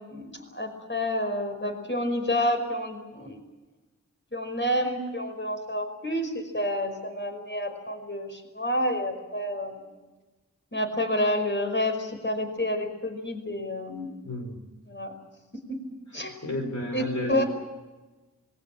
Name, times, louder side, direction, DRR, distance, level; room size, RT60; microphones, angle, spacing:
voice 1, 0.0-3.4 4.3-9.8 10.7-14.2 14.9-15.1 15.7-15.8 16.1-16.4 16.9-17.4, left 1 dB, 40° left, 5 dB, 5.2 m, -29 dB
voice 2, 14.2-14.7 16.2-17.4, left 1 dB, 70° left, 2 dB, 4.7 m, -32 dB
26.5 x 22.0 x 7.4 m, 1.2 s
wide cardioid pair, 50°, 30 cm